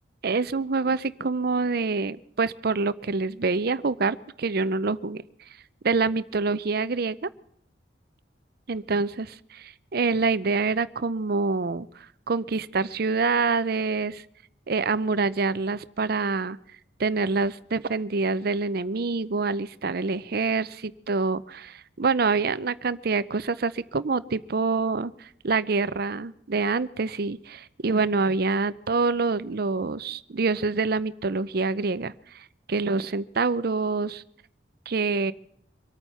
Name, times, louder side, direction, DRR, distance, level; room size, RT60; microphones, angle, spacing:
voice 1, 0.2-5.2 5.8-7.3 8.7-9.3 9.5-11.9 12.3-14.2 14.7-16.6 17.0-34.2 34.9-35.3, right 4 dB, 55° right, 17 dB, 0.6 m, -26 dB
24.5 x 9.1 x 5.6 m, 0.68 s
head